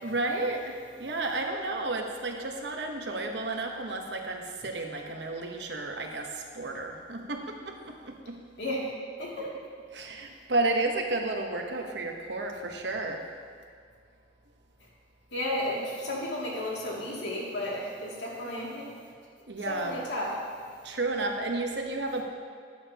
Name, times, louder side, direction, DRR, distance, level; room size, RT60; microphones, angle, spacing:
voice 1, 0.0-8.4 9.9-13.2 19.5-20.0 20.8-22.2, right 2 dB, 70° right, 3 dB, 1.0 m, -32 dB
voice 2, 15.3-18.8 19.7-20.3, left 1 dB, 85° left, -5 dB, 2.5 m, -33 dB
12.5 x 9.5 x 2.9 m, 2.1 s
head